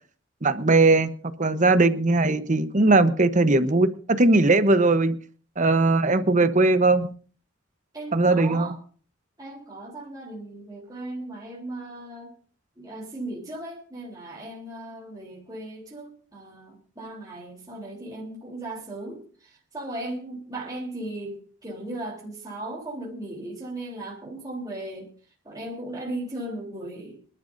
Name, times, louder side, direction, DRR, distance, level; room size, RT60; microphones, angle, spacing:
voice 1, 0.4-1.1 1.4-5.2 5.6-7.1 8.1-8.7, right 2 dB, 40° right, 11 dB, 1.0 m, -19 dB
voice 2, 7.9-8.8 9.4-12.4 12.8-27.3, right 1 dB, 20° right, -4 dB, 3.6 m, -37 dB
26.0 x 12.0 x 2.7 m, 0.42 s
head